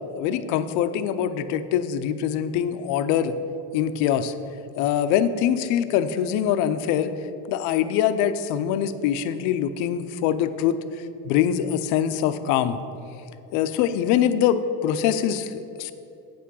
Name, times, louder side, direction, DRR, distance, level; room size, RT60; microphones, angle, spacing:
voice 1, 0.1-3.3 3.7-4.3 4.8-7.1 7.5-10.8 11.2-12.8 13.5-15.9, left 9 dB, 55° left, 11 dB, 0.5 m, -23 dB
8.5 x 5.8 x 6.2 m, 2.7 s
cardioid pair, 180°, 35 cm